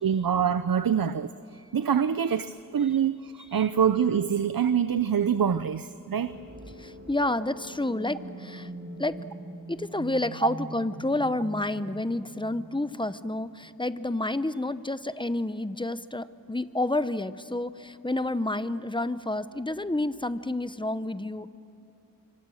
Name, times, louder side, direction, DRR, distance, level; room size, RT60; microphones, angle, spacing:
voice 1, 0.0-1.3 1.7-6.3, right 8 dB, 85° right, 13 dB, 0.6 m, -25 dB
sound 1, 6.3-14.0, right 1 dB, 40° right, 2.1 m, -43 dB
voice 2, 6.8-8.7 9.0-9.1 9.7-21.5, left 2 dB, 15° left, 13 dB, 0.8 m, -29 dB
26.0 x 24.5 x 6.4 m, 2.9 s
wide cardioid pair, 60°, 34 cm